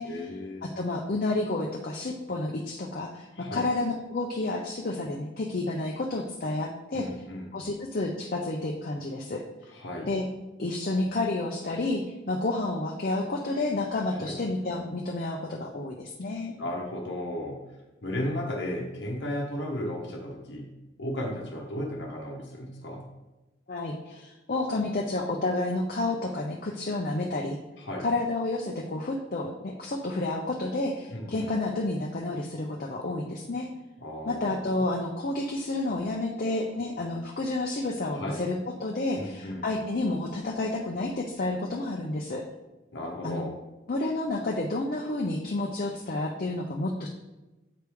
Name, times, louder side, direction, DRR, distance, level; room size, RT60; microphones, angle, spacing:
voice 1, 0.0-0.7 3.3-3.7 6.9-7.6 9.7-10.1 14.2-14.4 16.6-17.6 18.0-20.7 21.0-23.1 27.8-28.1 31.1-31.5 34.0-34.8 38.1-38.4 39.2-39.7 42.9-43.5, left 1 dB, 60° left, -1 dB, 0.9 m, -35 dB
voice 2, 0.6-7.1 7.5-9.4 10.0-10.2 10.6-16.6 23.7-27.6 28.0-33.7 34.3-42.4 43.2-43.4 43.9-47.1, left 2 dB, 45° left, 0 dB, 0.5 m, -30 dB
7.8 x 4.7 x 3.5 m, 1.1 s
head